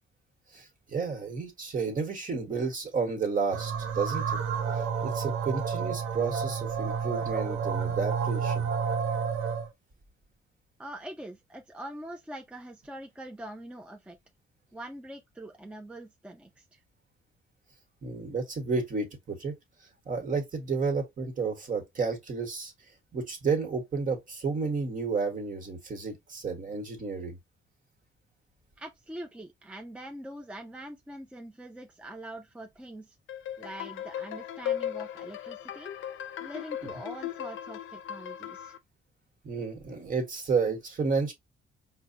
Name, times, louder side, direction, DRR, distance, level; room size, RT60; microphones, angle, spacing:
voice 1, 0.5-4.4 5.0-8.7 18.0-19.5 20.0-22.7 23.1-27.4 39.4-41.3, right 4 dB, 40° right, 1.4 m, -31 dB
sound 1, 3.5-9.7, right 6 dB, 90° right, 0.7 m, -30 dB
voice 2, 10.8-14.2 14.7-16.8 28.8-33.2 33.6-35.9 36.4-38.8 40.7-40.8, right 1 dB, 5° right, 0.5 m, -43 dB
ambient flurry, 33.3-38.8, left 10 dB, 75° left, 0.5 m, -37 dB
4.6 x 2.2 x 2.7 m
cardioid pair, 90°, 20 cm